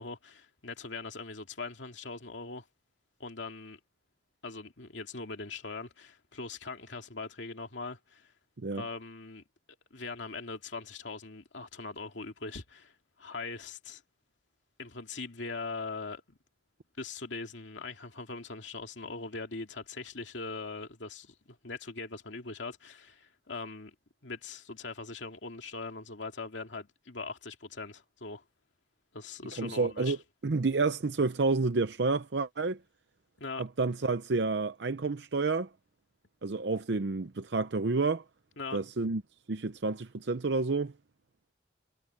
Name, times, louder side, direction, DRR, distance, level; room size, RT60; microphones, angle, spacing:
voice 1, 0.0-2.6 3.2-3.8 4.4-8.3 8.7-9.4 9.9-14.0 14.8-16.4 17.0-23.9 24.2-28.4 29.1-30.2 33.4-33.6 38.6-38.8, left 3 dB, 85° left, 2.4 m, -41 dB
voice 2, 29.6-30.2 30.4-32.8 33.6-35.7 36.4-38.2 38.7-39.2 39.5-40.9, right 3 dB, 70° right, 0.7 m, -29 dB
head